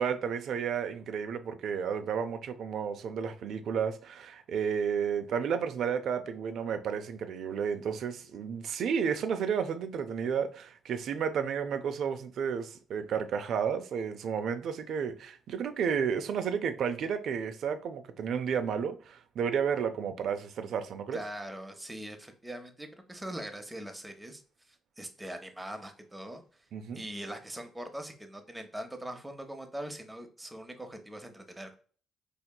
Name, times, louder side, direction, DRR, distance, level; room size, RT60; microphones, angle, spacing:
voice 1, 0.0-21.2 26.7-27.0, right 7 dB, 70° right, 0.5 m, -32 dB
voice 2, 21.1-24.4 24.7-26.4 26.9-31.8, right 1 dB, 10° right, 0.7 m, -42 dB
4.4 x 2.7 x 2.2 m
cardioid pair, 90°, 0 cm